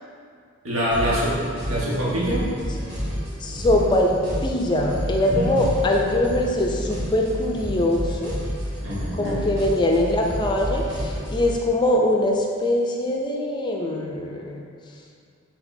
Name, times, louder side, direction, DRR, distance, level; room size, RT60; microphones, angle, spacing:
voice 1, 0.6-2.5 5.3-5.6 8.8-9.4, right 1 dB, 85° right, -7 dB, 1.2 m, -25 dB
sound 1, 0.9-11.6, equal, 50° right, 1.2 m, -30 dB
voice 2, 3.4-8.4 9.2-14.6, left 1 dB, 20° left, 0 dB, 0.4 m, -22 dB
4.9 x 3.8 x 2.6 m, 2.3 s
head